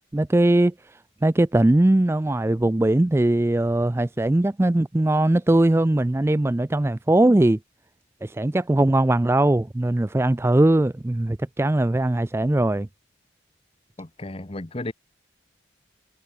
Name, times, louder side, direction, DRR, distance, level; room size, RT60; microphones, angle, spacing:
voice 1, 0.1-0.7 1.2-7.6 8.2-12.9, right 1 dB, 10° right, 0.3 m, -20 dB
voice 2, 14.0-14.9, left 2 dB, 30° left, 1.0 m, -33 dB
head